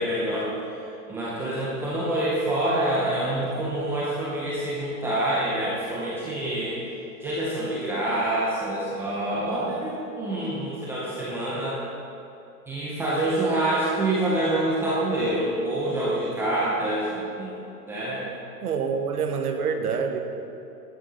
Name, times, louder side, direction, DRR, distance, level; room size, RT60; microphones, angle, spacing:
voice 1, 0.0-6.8 7.2-11.8 12.7-17.6 17.9-18.2, right 1 dB, 5° right, -7 dB, 0.6 m, -26 dB
voice 2, 18.6-20.2, right 6 dB, 75° right, 5 dB, 1.5 m, -26 dB
11.5 x 8.9 x 5.4 m, 2.9 s
hypercardioid pair, 155°, 46 cm